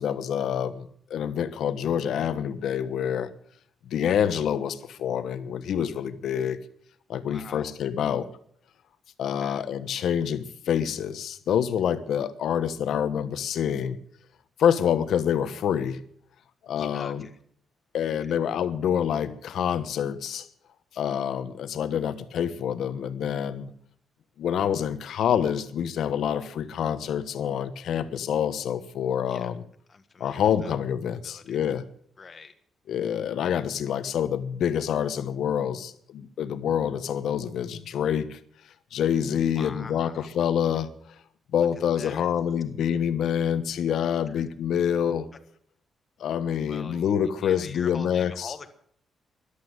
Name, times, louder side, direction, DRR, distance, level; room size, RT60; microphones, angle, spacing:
voice 1, 0.0-3.3 3.8-6.6 7.1-8.3 9.2-14.0 14.6-16.0 16.6-17.3 17.9-20.5 20.9-23.7 24.4-29.6 30.2-31.8 32.9-38.4 38.9-40.9 41.5-45.3 46.2-48.5, left 9 dB, 65° left, 12 dB, 1.2 m, -27 dB
voice 2, 7.3-7.7 9.4-9.6 16.7-17.4 18.0-18.3 29.3-29.5 29.9-30.8 31.2-31.6 32.2-32.5 39.5-40.3 42.0-42.3 44.3-44.4 46.7-47.0 47.4-48.7, left 4 dB, 30° left, 8 dB, 1.5 m, -44 dB
13.5 x 11.5 x 8.1 m, 0.63 s
cardioid pair, 150°, 0 cm